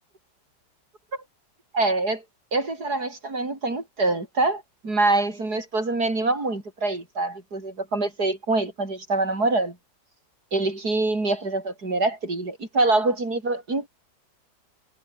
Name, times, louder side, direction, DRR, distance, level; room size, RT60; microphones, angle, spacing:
voice 1, 1.7-2.2 2.5-9.8 10.5-13.9, right 2 dB, 55° right, 5.9 m, -25 dB
omnidirectional pair, 2.0 m